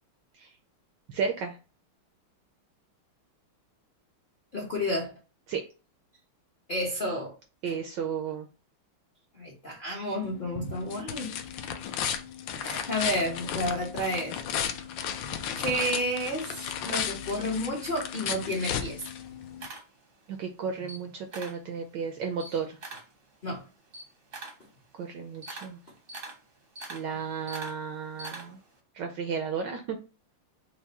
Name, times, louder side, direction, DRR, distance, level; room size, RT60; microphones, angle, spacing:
voice 1, 1.1-1.6 5.5-5.6 7.6-8.5 20.4-22.8 25.0-25.8 26.9-28.6 29.0-30.0, right 6 dB, 75° right, 4 dB, 1.0 m, -33 dB
voice 2, 4.5-5.1 6.7-7.3 7.7-7.8 9.4-11.3 12.6-14.4 15.6-19.0 22.5-22.6 23.4-23.6, equal, 60° left, -3 dB, 0.5 m, -31 dB
sound 1, 10.2-19.7, left 8 dB, 75° left, 1.1 m, -34 dB
Camera, 17.8-20.4 20.8-21.7 22.0-28.8, right 2 dB, 50° right, 0.6 m, -44 dB
4.6 x 2.1 x 4.1 m, 0.33 s
omnidirectional pair, 2.3 m